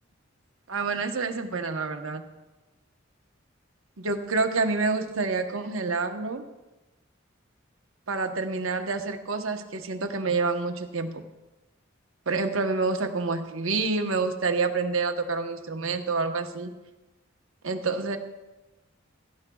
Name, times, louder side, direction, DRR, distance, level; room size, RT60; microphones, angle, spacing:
voice 1, 0.7-2.2 4.0-6.4 8.1-11.2 12.3-16.7 17.6-18.2, right 4 dB, 85° right, 5 dB, 1.0 m, -28 dB
17.0 x 13.5 x 2.3 m, 1.1 s
head